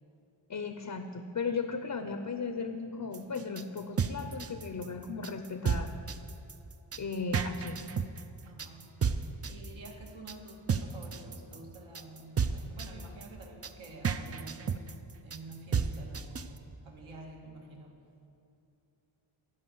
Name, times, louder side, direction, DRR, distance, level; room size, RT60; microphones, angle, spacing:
voice 1, 0.5-5.9 7.0-7.9, left 4 dB, 40° left, 7 dB, 0.6 m, -36 dB
sound 1, 3.1-16.6, right 6 dB, 35° right, 0.4 m, -33 dB
voice 2, 8.5-8.9 9.4-14.9 15.2-18.0, right 2 dB, 75° right, -1 dB, 2.0 m, -49 dB
15.0 x 5.2 x 9.3 m, 2.7 s
wide cardioid pair, 135°, 48 cm